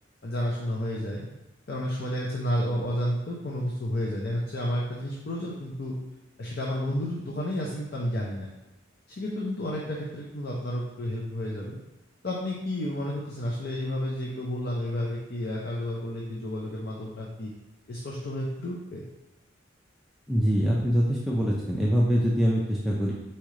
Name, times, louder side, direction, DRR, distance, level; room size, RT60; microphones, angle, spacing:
voice 1, 0.2-1.3 1.7-6.0 6.4-8.5 9.1-11.8 12.2-17.5 17.9-19.0, left 1 dB, 50° left, -3 dB, 0.6 m, -31 dB
voice 2, 20.3-23.1, equal, ahead, -5 dB, 0.4 m, -24 dB
4.3 x 3.2 x 3.7 m, 1.0 s
head